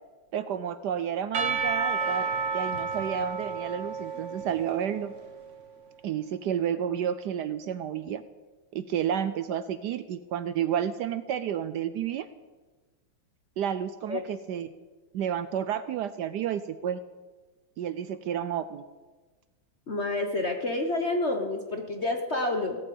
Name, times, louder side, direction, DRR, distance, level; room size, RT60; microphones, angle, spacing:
voice 1, 0.3-2.3 2.5-5.1 6.0-8.2 8.7-12.3 13.6-14.7 15.1-17.0 17.8-18.8, right 9 dB, 70° right, 13 dB, 1.0 m, -31 dB
Percussion / Church bell, 1.3-5.3, right 5 dB, 40° right, 1.3 m, -31 dB
voice 2, 19.9-22.8, left 2 dB, 40° left, 4 dB, 1.2 m, -28 dB
16.0 x 8.7 x 8.5 m, 1.3 s
omnidirectional pair, 2.3 m